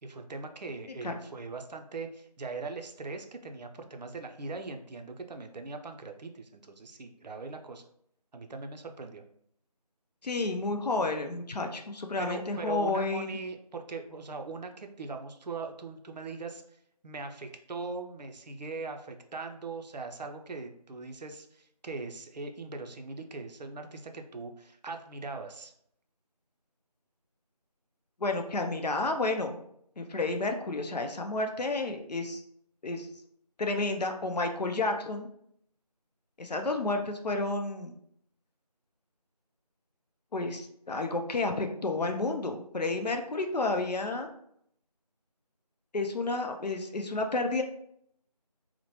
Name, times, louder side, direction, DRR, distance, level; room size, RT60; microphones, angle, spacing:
voice 1, 0.0-7.8 8.3-9.2 12.2-25.7, right 3 dB, 90° right, 5 dB, 0.5 m, -40 dB
voice 2, 10.2-13.4 28.2-29.6 30.0-32.4 32.8-33.1 33.6-35.3 36.4-37.9 40.3-44.3 45.9-47.6, left 3 dB, 80° left, 5 dB, 0.5 m, -31 dB
2.9 x 2.0 x 2.9 m, 0.70 s
figure-of-eight pair, 180°, 21 cm